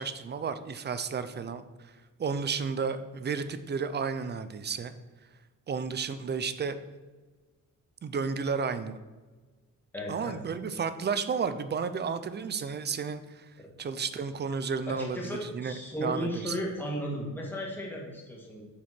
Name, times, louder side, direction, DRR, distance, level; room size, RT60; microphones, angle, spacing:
voice 1, 0.0-1.6 2.2-4.9 5.7-6.8 8.0-9.0 10.1-13.5 13.8-16.5, right 5 dB, 30° right, 12 dB, 0.4 m, -32 dB
voice 2, 9.9-10.4 13.6-13.7 14.9-18.6, equal, 5° left, -3 dB, 1.7 m, -35 dB
7.1 x 4.8 x 6.0 m, 1.3 s
wide cardioid pair, 160°, 33 cm